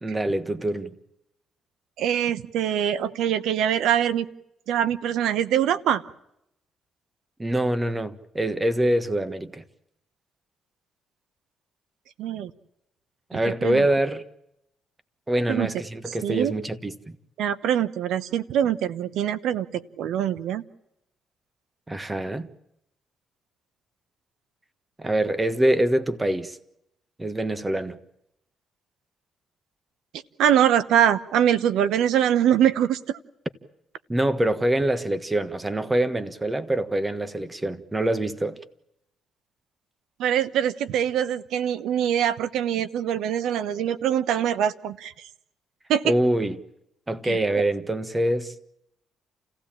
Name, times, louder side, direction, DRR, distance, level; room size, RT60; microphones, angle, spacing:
voice 1, 0.0-0.9 7.4-9.6 13.3-14.2 15.3-16.9 21.9-22.5 25.0-26.6 27.2-28.0 34.1-38.6 46.0-46.6 47.1-48.5, right 1 dB, 15° right, 1.5 m, -25 dB
voice 2, 2.0-4.3 4.7-6.0 12.2-12.5 13.3-13.9 15.5-15.7 16.1-16.5 17.4-20.6 30.4-33.2 40.2-45.3 45.9-46.1 47.2-47.4, right 10 dB, 85° right, 1.0 m, -23 dB
29.0 x 16.0 x 8.9 m
cardioid pair, 90°, 0 cm